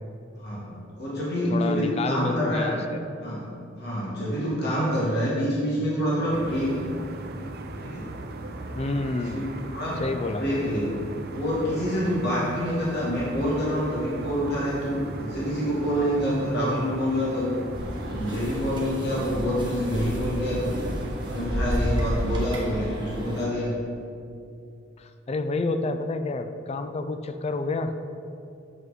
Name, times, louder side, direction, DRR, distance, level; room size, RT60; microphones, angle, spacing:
voice 1, 0.4-2.8 3.2-6.9 7.8-8.1 9.1-9.4 9.7-10.0 10.3-11.0 11.3-17.6 18.1-20.7 21.2-23.8, equal, 55° left, -7 dB, 1.7 m, -27 dB
voice 2, 1.5-3.0 8.8-9.4 10.0-10.4 25.0-27.9, left 3 dB, 35° left, 9 dB, 0.4 m, -29 dB
sound 1, 6.3-22.3, right 2 dB, 55° right, 0.5 m, -38 dB
sound 2, 17.7-23.4, equal, 25° right, 1.3 m, -31 dB
7.4 x 5.5 x 4.0 m, 2.5 s
head